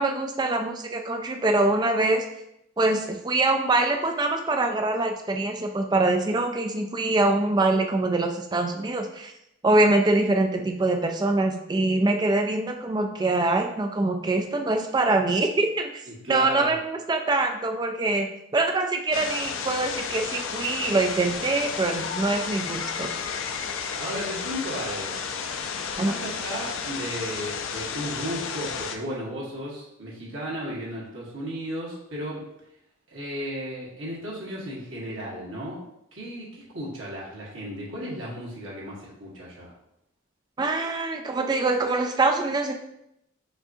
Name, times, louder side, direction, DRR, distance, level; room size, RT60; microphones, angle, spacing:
voice 1, 0.0-2.2 2.8-9.3 9.6-16.0 16.3-18.3 18.5-23.1 26.0-26.1 40.6-42.7, right 2 dB, 20° right, 5 dB, 0.3 m, -24 dB
voice 2, 16.1-16.7 24.0-25.2 26.0-32.4 33.1-35.8 36.1-39.7, equal, 85° right, -5 dB, 1.4 m, -34 dB
sound 1, 19.1-29.0, left 6 dB, 85° left, 0.4 m, -32 dB
6.1 x 2.5 x 2.6 m, 0.81 s
head